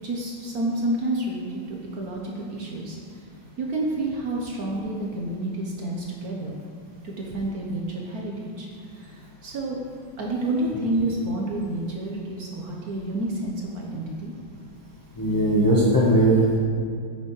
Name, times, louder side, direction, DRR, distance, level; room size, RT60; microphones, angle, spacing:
voice 1, 0.0-3.0 3.6-6.6 7.0-9.8 10.2-14.3, right 1 dB, 55° right, -2 dB, 1.1 m, -29 dB
voice 2, 15.2-16.6, right 1 dB, 20° left, -5 dB, 0.6 m, -19 dB
8.6 x 7.0 x 3.1 m, 2.3 s
omnidirectional pair, 2.2 m